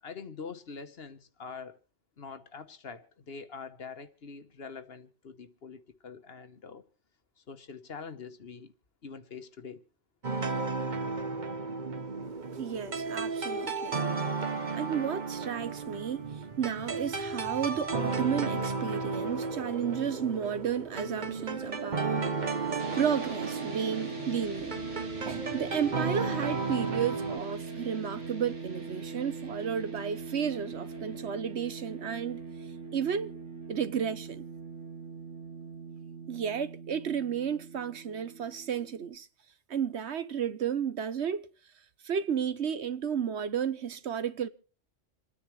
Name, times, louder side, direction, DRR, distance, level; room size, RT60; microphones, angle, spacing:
voice 1, 0.0-1.8 2.2-6.8 7.4-8.7 9.0-9.8, left 5 dB, 60° left, 1.3 m, -44 dB
sound 1, 10.2-27.4, right 4 dB, 40° right, 1.1 m, -34 dB
voice 2, 12.5-14.0 14.7-22.3 22.9-24.8 25.2-32.4 32.9-33.3 33.7-34.4 36.3-39.3 39.7-41.5 42.0-44.5, right 7 dB, 65° right, 1.3 m, -32 dB
sound 2, 22.8-39.1, right 3 dB, 90° right, 2.4 m, -41 dB
27.5 x 9.9 x 3.2 m
omnidirectional pair, 1.2 m